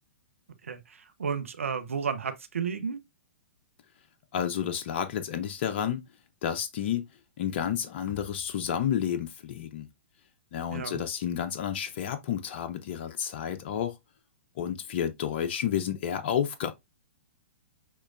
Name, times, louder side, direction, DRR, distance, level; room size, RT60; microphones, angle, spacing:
voice 1, 0.6-3.0 10.7-11.0, right 6 dB, 85° right, 0.7 m, -32 dB
voice 2, 4.3-6.0 6.4-7.0 7.4-9.9 10.5-13.9 14.6-16.7, left 9 dB, 55° left, 0.7 m, -30 dB
6.4 x 3.1 x 2.5 m
hypercardioid pair, 120°, 7 cm